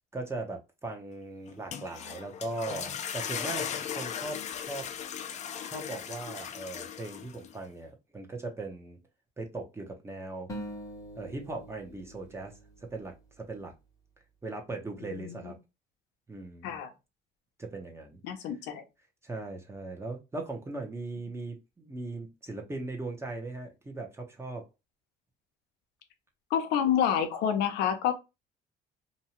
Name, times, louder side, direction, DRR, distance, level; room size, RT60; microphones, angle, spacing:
voice 1, 0.1-4.9 5.7-9.0 9.4-10.5 11.2-12.5 12.9-13.7 14.4-15.6 16.3-16.7 17.6-18.2 19.2-24.6, right 2 dB, 15° right, 0.8 m, -39 dB
sound 1, 1.5-7.5, left 8 dB, 45° left, 0.4 m, -37 dB
sound 2, 10.5-13.7, equal, 20° left, 0.9 m, -44 dB
voice 2, 15.0-15.5 16.6-16.9 18.2-18.8 26.5-28.1, left 9 dB, 90° left, 0.6 m, -28 dB
2.7 x 2.3 x 2.9 m
cardioid pair, 110°, 17 cm